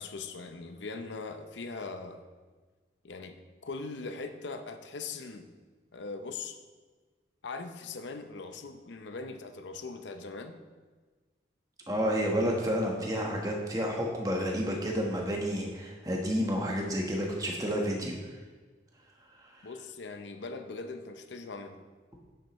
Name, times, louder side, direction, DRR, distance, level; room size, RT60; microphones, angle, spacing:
voice 1, 0.0-2.2 3.0-3.4 3.6-5.5 5.9-6.6 7.4-10.6 19.6-21.8, left 3 dB, 85° left, 7 dB, 0.7 m, -40 dB
voice 2, 11.9-18.2 19.5-19.7, equal, 20° right, 0 dB, 1.2 m, -30 dB
9.9 x 7.4 x 3.1 m, 1.4 s
head